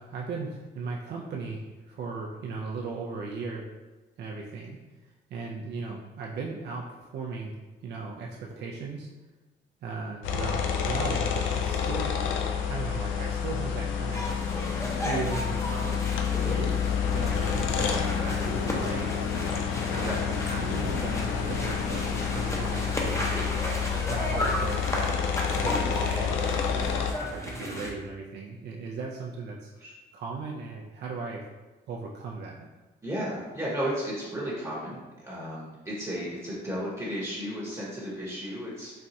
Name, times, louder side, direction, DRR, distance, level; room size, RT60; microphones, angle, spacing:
voice 1, 0.0-3.7 4.2-4.8 5.3-7.6 7.8-9.1 9.8-12.3 12.7-14.2 15.0-16.0 16.4-19.4 19.9-23.4 23.9-29.7 30.1-31.4 31.9-32.7, right 4 dB, 60° right, -2 dB, 0.4 m, -37 dB
sound 1, 10.2-27.1, left 7 dB, 80° left, 0.4 m, -29 dB
sound 2, 14.1-27.9, left 1 dB, 15° left, 0.6 m, -34 dB
voice 2, 33.0-39.0, equal, 15° right, -6 dB, 0.9 m, -34 dB
4.2 x 2.2 x 2.6 m, 1.2 s
cardioid pair, 90°, 20 cm